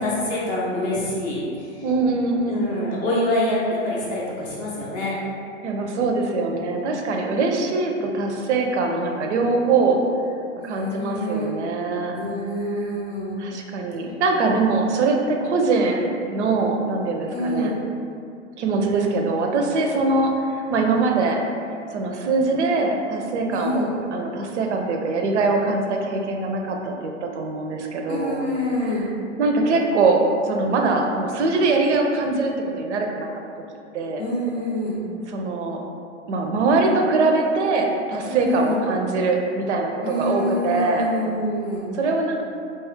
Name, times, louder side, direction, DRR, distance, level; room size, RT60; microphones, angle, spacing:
voice 1, 0.0-1.4 2.5-5.2 10.6-11.5 12.1-13.4 17.3-17.7 23.5-23.9 28.1-29.1 34.2-35.0 38.3-38.8 40.0-41.9, left 1 dB, 20° left, -6 dB, 0.5 m, -26 dB
voice 2, 1.8-2.8 5.6-10.0 10.6-12.1 12.7-12.9 13.4-17.7 18.6-21.4 21.9-29.1 29.4-33.3 33.9-34.2 35.3-35.8 36.3-41.1 41.9-42.4, right 3 dB, 60° right, 2 dB, 0.5 m, -22 dB
2.8 x 2.3 x 3.1 m, 2.4 s
figure-of-eight pair, 110°, 39 cm